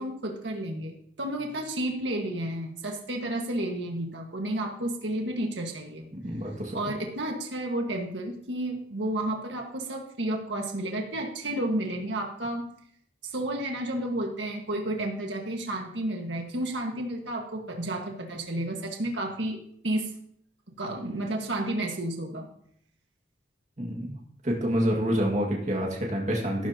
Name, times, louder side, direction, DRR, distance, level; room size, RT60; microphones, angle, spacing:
voice 1, 0.0-6.1 6.7-12.7 13.2-19.6 19.8-20.1 20.8-22.5, right 1 dB, 75° right, 1 dB, 1.7 m, -31 dB
voice 2, 6.1-6.8 23.8-24.2 24.4-26.7, equal, 40° right, -2 dB, 2.0 m, -27 dB
14.0 x 13.0 x 2.9 m, 0.68 s
head